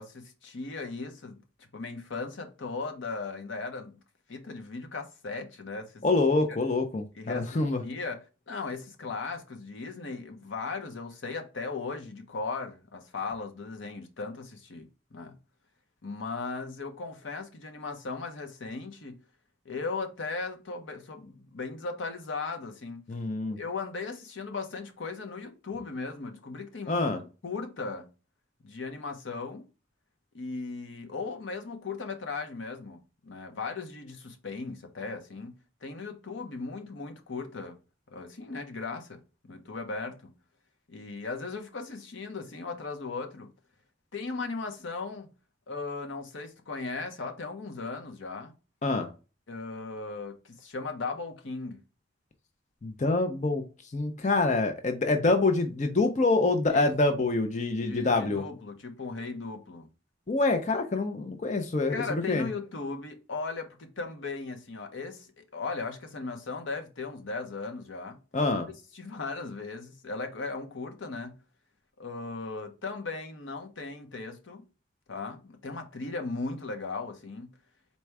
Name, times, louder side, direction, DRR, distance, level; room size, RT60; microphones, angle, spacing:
voice 1, 0.0-3.9 4.3-6.0 7.1-8.2 8.5-15.3 16.0-19.2 19.6-23.0 23.5-27.1 27.4-28.1 28.6-29.7 30.3-37.8 38.1-39.2 39.5-40.3 40.9-43.5 44.1-45.3 45.7-48.5 49.5-51.8 56.7-56.9 57.8-59.9 61.9-68.2 68.9-71.3 72.0-74.6 75.1-77.5, left 4 dB, 85° left, 0.8 m, -37 dB
voice 2, 6.0-7.8 23.1-23.6 26.9-27.2 48.8-49.1 52.8-53.6 53.9-58.4 60.3-62.5 68.3-68.7, left 3 dB, 40° left, 0.5 m, -26 dB
4.1 x 2.3 x 4.6 m
head